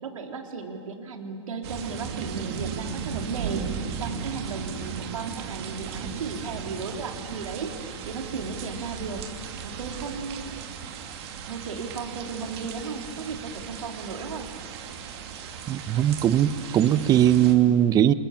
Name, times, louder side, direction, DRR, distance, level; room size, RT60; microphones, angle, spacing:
voice 1, 0.0-7.7 8.1-9.2 9.6-10.5 11.4-14.5, right 4 dB, 75° right, 3 dB, 3.7 m, -35 dB
sound 1, 1.6-17.5, right 7 dB, 50° right, 3.1 m, -36 dB
voice 2, 15.7-18.1, right 11 dB, 20° right, 15 dB, 0.9 m, -20 dB
29.5 x 27.5 x 7.3 m, 2.4 s
hypercardioid pair, 130°, 17 cm